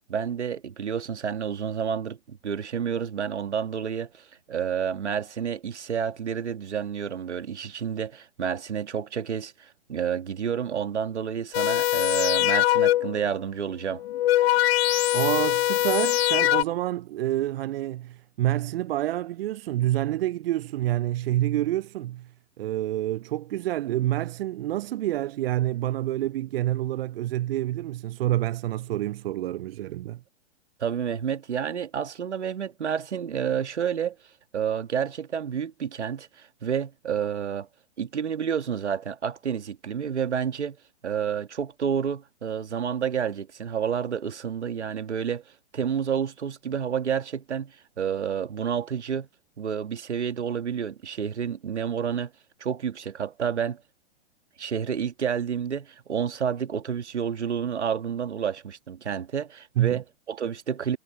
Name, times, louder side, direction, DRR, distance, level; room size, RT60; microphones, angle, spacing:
voice 1, 0.1-14.0 30.8-34.2 34.5-37.7 38.0-40.8 41.0-45.4 45.7-49.3 49.6-52.3 52.6-53.8 54.6-61.0, right 7 dB, 85° right, 1.7 m, -29 dB
sound 1, 11.5-13.3 14.0-16.6, left 14 dB, 65° left, 1.4 m, -22 dB
voice 2, 15.1-22.3 22.6-30.2 59.8-60.0, right 14 dB, 60° right, 0.5 m, -28 dB
hypercardioid pair, 115°, 34 cm